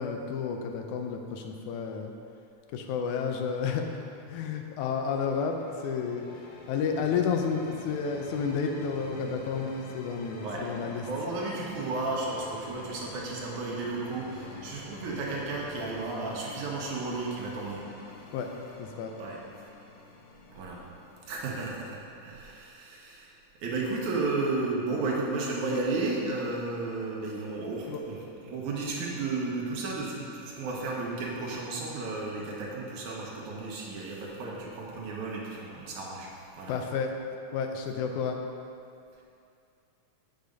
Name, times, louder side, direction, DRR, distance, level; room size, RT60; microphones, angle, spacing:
voice 1, 0.0-2.1 2.7-3.9 4.3-5.6 5.8-6.3 6.7-11.0 18.3-18.5 18.8-19.1 27.9-28.0 36.7-37.1 37.5-38.4, left 6 dB, 80° left, 3 dB, 2.1 m, -31 dB
sound 1, 5.0-22.7, left 2 dB, 65° left, 1.4 m, -47 dB
voice 2, 11.0-17.8 19.2-19.4 20.5-20.8 21.3-23.3 23.6-36.8, right 3 dB, 75° right, -3 dB, 2.7 m, -33 dB
7.9 x 6.7 x 5.2 m, 2.5 s
omnidirectional pair, 3.5 m